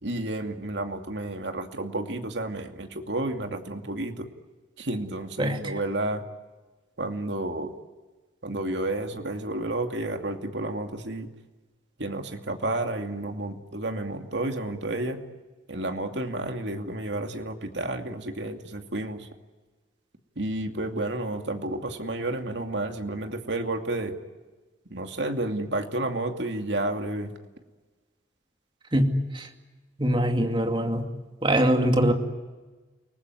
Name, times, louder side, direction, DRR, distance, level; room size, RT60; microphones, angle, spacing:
voice 1, 0.0-4.3 4.8-6.2 7.0-7.7 8.4-11.3 12.0-15.2 15.7-19.3 20.4-24.1 24.9-27.3, right 2 dB, 65° right, 5 dB, 2.5 m, -31 dB
voice 2, 28.9-29.5 30.0-31.1 31.4-32.1, equal, 25° right, 5 dB, 2.5 m, -23 dB
29.5 x 20.0 x 9.6 m, 1.3 s
head